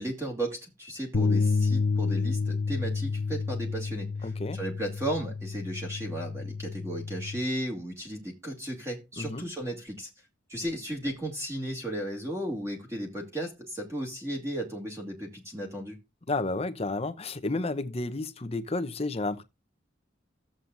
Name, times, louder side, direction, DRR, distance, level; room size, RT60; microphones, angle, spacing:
voice 1, 0.0-10.1 10.5-16.0, right 1 dB, 15° right, 2.1 m, -35 dB
sound 1, 1.1-7.4, left 4 dB, 70° left, 0.8 m, -29 dB
voice 2, 4.2-4.6 9.2-9.5 16.3-19.4, left 2 dB, 30° left, 0.8 m, -31 dB
14.5 x 7.6 x 2.5 m
head